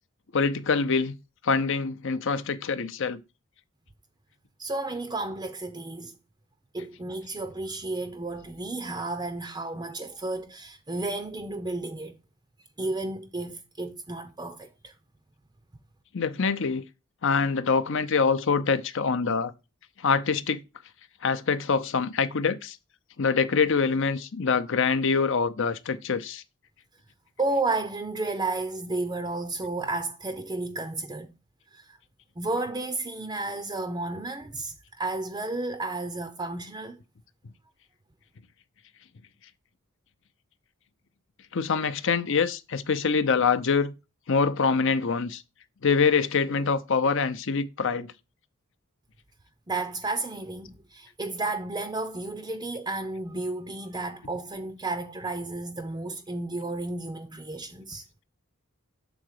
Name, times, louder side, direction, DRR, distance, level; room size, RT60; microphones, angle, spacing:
voice 1, 0.3-1.2 1.4-3.2 16.1-16.8 17.2-19.5 20.0-20.6 21.2-22.8 23.2-26.4 41.5-43.9 44.3-45.4 45.8-48.1, left 5 dB, 60° left, 0.7 m, -25 dB
voice 2, 4.6-6.1 6.7-12.2 12.8-14.9 27.4-31.3 31.7-32.0 32.4-37.0 49.7-58.1, right 2 dB, 20° right, 0.6 m, -32 dB
7.0 x 3.8 x 6.5 m
head